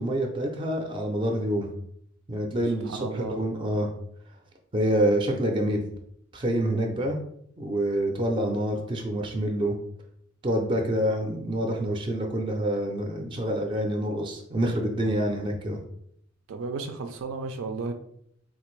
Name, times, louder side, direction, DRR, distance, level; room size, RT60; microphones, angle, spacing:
voice 1, 0.0-1.7 2.3-3.9 4.7-5.8 6.3-7.2 7.6-9.8 10.4-15.8, right 1 dB, 25° right, 3 dB, 0.4 m, -27 dB
voice 2, 2.8-3.4 16.5-17.9, right 4 dB, 90° right, 5 dB, 0.4 m, -33 dB
3.7 x 2.5 x 3.1 m, 0.70 s
head